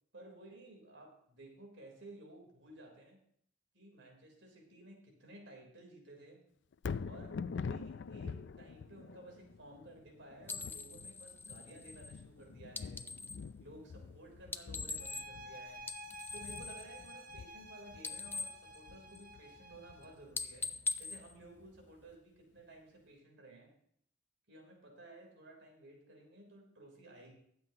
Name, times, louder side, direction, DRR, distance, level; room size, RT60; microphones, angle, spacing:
voice 1, 0.1-3.2 3.7-6.4 7.0-13.2 13.6-16.0 16.3-20.7 21.0-23.8 24.5-27.4, right 1 dB, 85° right, 1 dB, 3.6 m, -55 dB
Thunder, 6.7-20.9 21.4-21.5, left 5 dB, 70° left, 0.4 m, -46 dB
sound 1, 10.5-13.5 14.4-15.5 15.8-17.7 17.9-19.5 19.8-20.0 20.3-22.2, left 3 dB, 10° left, 0.5 m, -43 dB
sound 2, 15.0-20.3, equal, 50° right, 1.2 m, -51 dB
23.0 x 7.8 x 2.9 m, 0.68 s
head